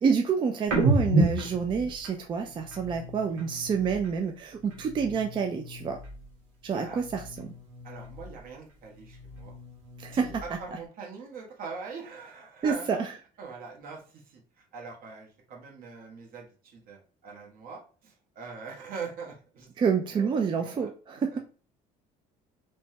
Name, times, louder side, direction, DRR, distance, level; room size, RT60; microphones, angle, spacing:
voice 1, 0.0-6.0 6.6-7.5 10.0-10.3 12.6-13.1 19.8-21.4, right 6 dB, 30° right, 4 dB, 0.4 m, -28 dB
sound 1, 0.7-4.2 4.5-6.4 6.7-8.5 8.9-10.7, right 2 dB, 90° right, 1.0 m, -32 dB
voice 2, 6.7-7.0 7.8-9.5 10.1-13.0 13.4-20.9 21.3-21.4, right 5 dB, 60° right, 0 dB, 1.1 m, -43 dB
3.2 x 2.1 x 2.8 m, 0.38 s
supercardioid pair, 90°, 16 cm